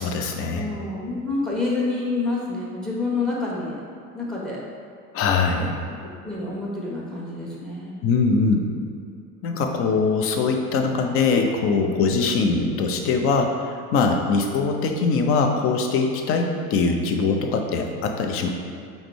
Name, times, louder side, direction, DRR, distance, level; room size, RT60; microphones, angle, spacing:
voice 1, 0.0-0.6 5.1-5.8 8.0-8.7 9.4-18.5, left 4 dB, 30° left, 3 dB, 0.4 m, -22 dB
voice 2, 0.5-3.8 4.1-4.6 6.2-8.0, left 3 dB, ahead, -5 dB, 1.0 m, -28 dB
4.9 x 2.1 x 4.5 m, 2.3 s
hypercardioid pair, 85°, 48 cm